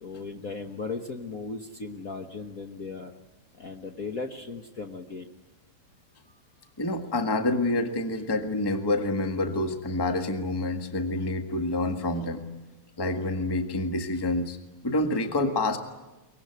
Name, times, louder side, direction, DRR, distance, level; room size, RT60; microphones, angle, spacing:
voice 1, 0.0-3.1 3.5-5.3, left 4 dB, 60° left, 4 dB, 0.8 m, -37 dB
voice 2, 6.8-12.4 13.0-14.6 14.8-15.8, left 2 dB, 15° left, 5 dB, 0.8 m, -27 dB
23.5 x 20.5 x 9.4 m, 1.1 s
omnidirectional pair, 3.4 m